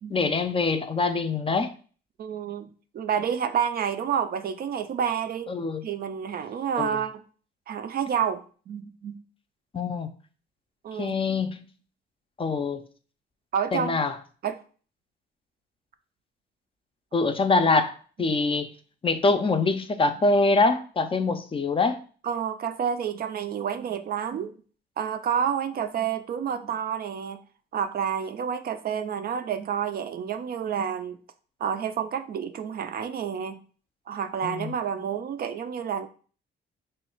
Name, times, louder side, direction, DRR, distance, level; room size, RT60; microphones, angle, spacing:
voice 1, 0.1-1.7 5.5-5.8 6.8-7.0 9.7-10.1 11.0-11.6 12.4-12.8 13.7-14.1 17.1-17.9 18.2-18.7 19.0-22.0 34.4-34.7, left 3 dB, 25° left, 0.4 m, -24 dB
voice 2, 2.2-2.7 2.9-5.5 5.8-7.2 7.7-9.2 10.8-11.2 13.5-14.0 14.4-14.6 22.2-24.5 25.0-27.4 27.7-31.2 31.6-33.6 34.1-36.1, right 8 dB, 50° right, 0.4 m, -29 dB
3.1 x 2.3 x 4.3 m
cardioid pair, 90°, 20 cm